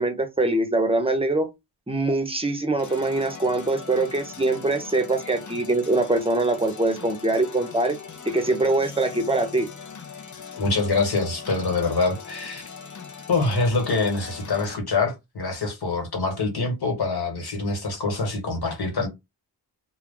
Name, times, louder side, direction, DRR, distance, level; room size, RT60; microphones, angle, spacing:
voice 1, 0.0-1.5 1.9-8.0 8.2-9.7, right 2 dB, 15° right, 0.8 m, -23 dB
sound 1, 2.8-14.8, left 6 dB, 45° left, 0.6 m, -41 dB
voice 2, 10.6-12.6 13.3-19.1, left 3 dB, 65° left, 1.4 m, -25 dB
2.3 x 2.3 x 3.7 m
cardioid pair, 55°, 42 cm